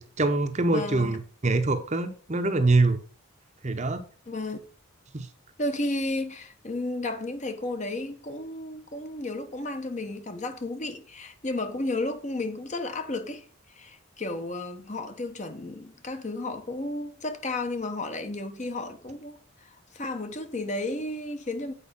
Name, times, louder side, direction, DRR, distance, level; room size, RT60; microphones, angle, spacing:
voice 1, 0.0-3.0 3.6-4.0 5.1-5.3, right 2 dB, 35° right, 0.8 m, -24 dB
voice 2, 0.6-1.1 4.3-4.6 5.6-21.7, left 2 dB, 35° left, 0.9 m, -33 dB
8.4 x 4.8 x 5.4 m
head